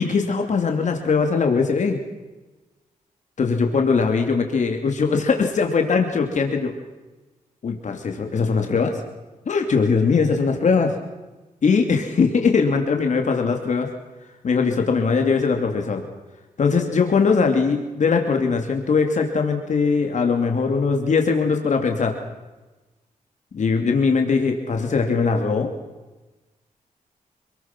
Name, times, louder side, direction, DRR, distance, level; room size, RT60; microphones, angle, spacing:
voice 1, 0.0-2.0 3.4-6.7 7.6-9.0 9.4-10.9 11.6-13.9 14.4-16.0 16.6-22.1 23.5-25.7, left 5 dB, 55° left, 4 dB, 2.8 m, -20 dB
27.5 x 21.0 x 6.1 m, 1.1 s
wide cardioid pair, 110°, 14 cm